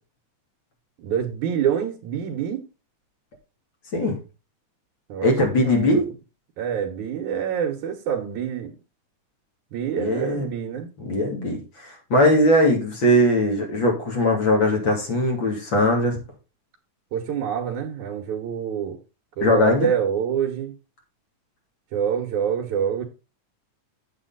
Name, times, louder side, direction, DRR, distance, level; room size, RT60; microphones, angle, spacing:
voice 1, 1.0-2.6 5.1-6.1 6.6-8.7 9.7-10.9 17.1-19.0 19.4-20.7 21.9-23.0, right 8 dB, 75° right, 2.6 m, -26 dB
voice 2, 5.2-6.1 10.0-10.5 11.0-16.2 19.4-19.9, left 1 dB, 40° left, 3.2 m, -20 dB
8.9 x 7.5 x 4.0 m
omnidirectional pair, 3.5 m